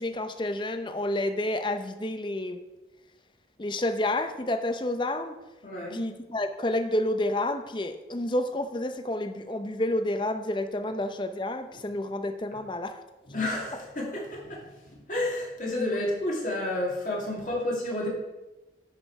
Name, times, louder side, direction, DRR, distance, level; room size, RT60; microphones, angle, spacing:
voice 1, 0.0-2.6 3.6-5.4 5.9-13.0, left 1 dB, 25° left, 8 dB, 0.6 m, -29 dB
voice 2, 5.6-6.0 13.3-14.6 15.1-18.1, left 1 dB, 45° left, -3 dB, 2.3 m, -30 dB
11.0 x 5.3 x 4.7 m, 1.1 s
head